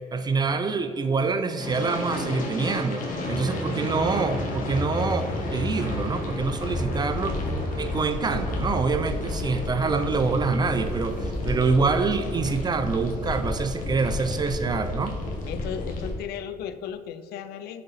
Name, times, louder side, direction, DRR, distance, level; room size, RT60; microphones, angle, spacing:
voice 1, 0.1-7.4 7.8-15.2, right 4 dB, 25° right, 9 dB, 0.4 m, -26 dB
sound 1, 1.6-16.1, left 1 dB, 50° left, 1.4 m, -31 dB
sound 2, 6.0-14.4, left 2 dB, 90° left, 1.2 m, -44 dB
voice 2, 15.5-17.8, left 8 dB, 75° left, 12 dB, 0.4 m, -35 dB
6.6 x 3.8 x 4.1 m, 2.1 s
cardioid pair, 110°, 17 cm